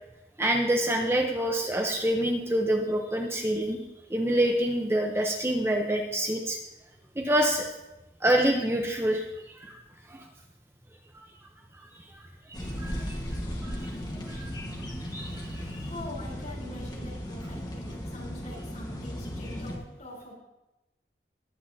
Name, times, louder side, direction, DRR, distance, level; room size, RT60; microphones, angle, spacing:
voice 1, 0.4-3.8 4.1-6.6 7.2-7.7 8.2-9.7 10.1-10.3 12.5-13.2 13.6-13.8 14.2-14.5 15.1-15.6, right 1 dB, 15° right, 2 dB, 0.9 m, -27 dB
sound 1, 12.5-19.8, equal, 25° left, 1.5 m, -36 dB
voice 2, 15.7-20.4, left 2 dB, 45° left, -5 dB, 4.1 m, -44 dB
19.5 x 8.3 x 2.8 m, 0.98 s
head